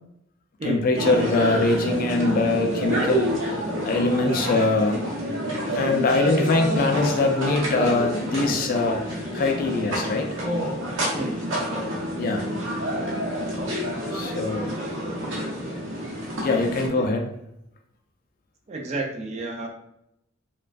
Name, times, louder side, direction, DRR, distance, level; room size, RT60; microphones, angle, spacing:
voice 1, 0.6-5.0 5.7-10.3 12.2-12.5 14.1-14.7 16.4-17.2, left 3 dB, 45° left, 3 dB, 0.3 m, -23 dB
sound 1, 0.9-16.9, equal, 75° right, 0.7 m, -28 dB
voice 2, 18.7-19.7, right 2 dB, 35° right, 1 dB, 0.4 m, -30 dB
2.3 x 2.2 x 2.3 m, 0.80 s
head